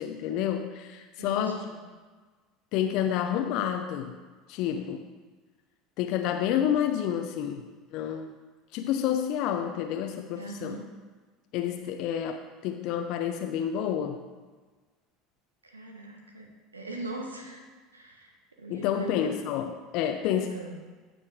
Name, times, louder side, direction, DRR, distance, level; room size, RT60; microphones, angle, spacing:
voice 1, 0.0-1.6 2.7-4.2 4.5-5.0 6.0-7.6 7.9-8.3 8.7-10.8 11.5-14.2 18.7-20.5, left 9 dB, 55° left, 5 dB, 0.6 m, -29 dB
voice 2, 1.2-1.7 10.3-10.9 15.6-17.6 17.9-18.3 18.6-19.1 20.5-20.8, right 2 dB, 85° right, 2 dB, 1.3 m, -40 dB
15.5 x 5.3 x 3.6 m, 1.4 s
figure-of-eight pair, 70°, 0 cm